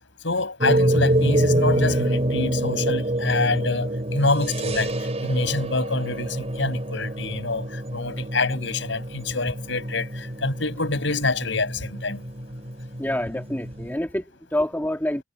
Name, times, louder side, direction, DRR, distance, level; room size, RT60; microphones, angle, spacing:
voice 1, 0.2-4.9 5.2-7.7 7.9-12.2, left 3 dB, 70° left, 7.1 m, -26 dB
sound 1, 0.6-13.9, right 1 dB, 35° right, 4.6 m, -26 dB
voice 2, 13.0-15.2, left 1 dB, 10° left, 1.9 m, -27 dB
head